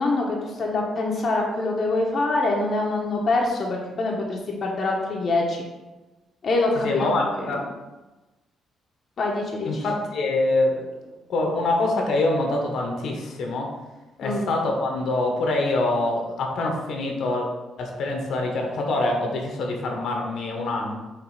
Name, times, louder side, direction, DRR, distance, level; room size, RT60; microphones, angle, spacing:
voice 1, 0.0-5.6 6.4-7.6 9.2-9.8 14.2-14.5, left 2 dB, 50° left, -1 dB, 1.1 m, -25 dB
voice 2, 6.7-7.6 9.6-10.8 11.3-13.7 14.2-17.5 17.8-21.0, left 2 dB, 75° left, 1 dB, 1.2 m, -25 dB
6.1 x 3.5 x 5.0 m, 1.1 s
cardioid pair, 90°, 0 cm